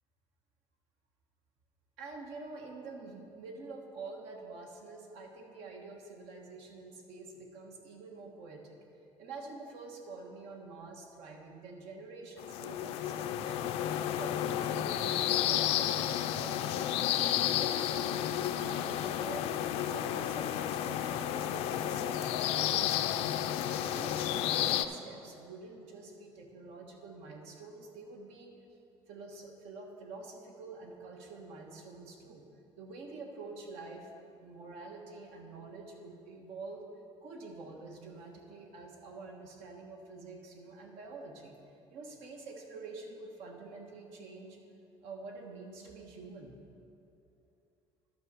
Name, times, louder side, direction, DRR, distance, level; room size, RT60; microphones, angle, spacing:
voice 1, 2.0-8.8 9.2-19.6 19.9-23.4 23.9-28.5 29.1-32.5 32.8-34.1 34.4-36.8 37.2-41.6 41.9-44.6 45.0-46.6, right 3 dB, 90° right, 2 dB, 1.4 m, -47 dB
sound 1, 12.4-24.9, left 11 dB, 75° left, 0.4 m, -32 dB
11.5 x 6.3 x 5.5 m, 2.7 s
cardioid pair, 135°, 11 cm